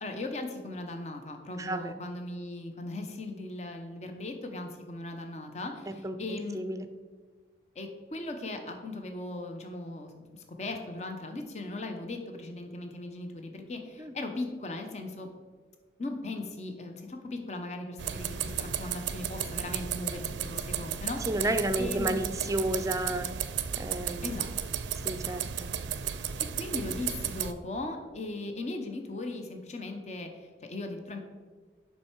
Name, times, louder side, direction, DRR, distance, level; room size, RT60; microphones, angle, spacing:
voice 1, 0.0-6.6 7.7-15.3 16.0-21.2 21.8-22.2 24.2-24.5 26.4-31.2, left 2 dB, 40° left, 5 dB, 0.8 m, -38 dB
voice 2, 1.6-2.0 6.0-6.9 14.0-14.1 21.3-23.3 23.8-24.3 25.0-25.7, right 1 dB, 20° right, 8 dB, 0.4 m, -32 dB
sound 1, 18.0-27.5, right 8 dB, 90° right, 0.4 m, -34 dB
7.6 x 5.6 x 4.5 m, 1.4 s
head